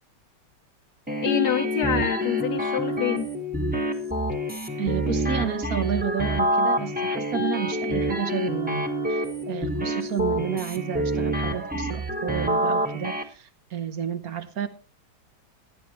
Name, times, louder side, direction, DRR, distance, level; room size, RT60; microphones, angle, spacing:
sound 1, 1.1-13.2, equal, 5° right, 1.2 m, -27 dB
voice 1, 1.2-3.3, left 9 dB, 70° left, 5 dB, 1.3 m, -26 dB
voice 2, 4.8-14.7, right 8 dB, 60° right, 10 dB, 1.3 m, -31 dB
17.5 x 11.5 x 3.0 m, 0.33 s
omnidirectional pair, 1.9 m